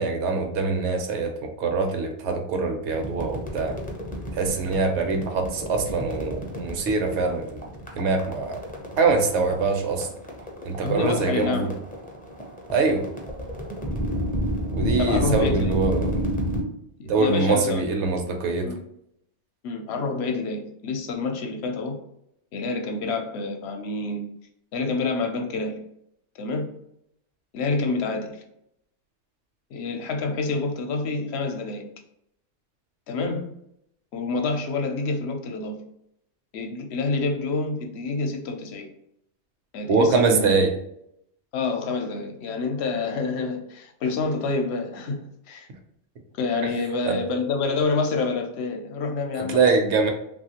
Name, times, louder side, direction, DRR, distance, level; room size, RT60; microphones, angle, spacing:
voice 1, 0.0-3.8 4.3-7.6 8.0-8.6 9.0-10.1 10.6-11.7 12.7-13.1 14.7-16.2 17.1-18.7 39.9-40.7 47.1-47.2 49.5-50.1, right 4 dB, 75° right, 4 dB, 0.9 m, -23 dB
sound 1, 2.9-16.6, equal, 15° left, 0.4 m, -31 dB
voice 2, 10.8-11.7 15.0-15.7 17.0-17.8 18.6-18.8 19.6-22.0 22.5-24.2 24.7-25.8 26.4-26.7 27.5-28.4 29.7-31.9 33.1-33.5 34.1-35.8 36.5-38.9 39.7-40.6 41.5-45.2 45.5-45.7 46.4-49.6, left 3 dB, 70° left, 4 dB, 0.8 m, -27 dB
3.1 x 2.4 x 2.8 m, 0.76 s
omnidirectional pair, 1.2 m